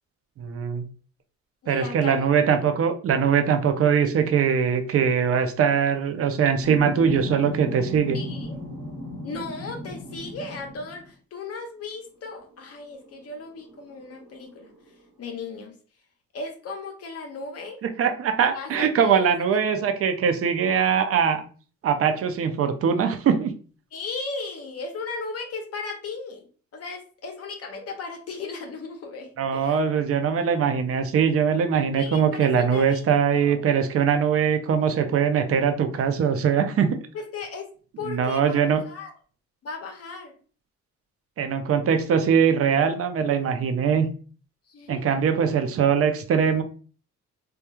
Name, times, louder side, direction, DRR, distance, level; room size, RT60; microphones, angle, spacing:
voice 1, 0.4-0.8 1.7-8.2 17.8-21.4 21.8-23.5 29.4-37.0 38.0-38.8 41.4-44.1 44.9-46.6, right 7 dB, 50° right, 8 dB, 0.5 m, -22 dB
voice 2, 1.6-2.2 8.1-8.6 9.2-14.7 15.2-15.7 16.3-17.8 18.5-19.3 23.9-29.8 31.9-33.6 37.1-37.7 38.0-39.1 39.6-40.3 44.7-45.2, left 4 dB, 50° left, 3 dB, 0.6 m, -36 dB
sound 1, 6.6-11.1 12.4-12.5 12.9-15.0, left 1 dB, 90° right, 1.0 m, -36 dB
3.0 x 2.3 x 2.2 m, 0.40 s
cardioid pair, 90°, 30 cm